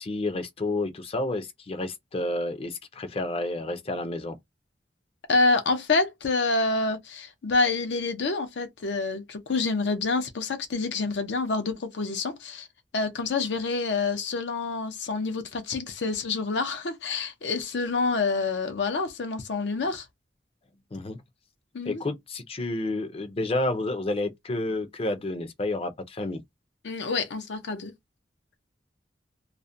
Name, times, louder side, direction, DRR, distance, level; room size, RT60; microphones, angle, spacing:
voice 1, 0.0-4.4 20.9-21.2 21.9-26.4, left 2 dB, 35° left, 0.5 m, -30 dB
voice 2, 5.3-12.7 12.9-20.1 21.7-22.0 26.8-27.9, left 3 dB, 85° left, 0.6 m, -27 dB
2.4 x 2.1 x 2.5 m
head